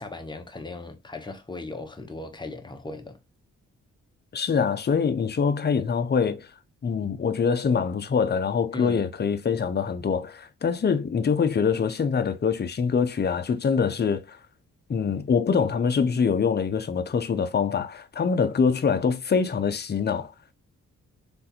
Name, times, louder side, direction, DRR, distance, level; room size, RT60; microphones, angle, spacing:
voice 1, 0.0-3.2 8.7-9.0, left 2 dB, 15° left, 0.8 m, -37 dB
voice 2, 4.3-6.5 6.8-14.4 14.9-20.3, left 6 dB, 35° left, 0.6 m, -24 dB
3.4 x 2.5 x 2.8 m
cardioid pair, 60°, 30 cm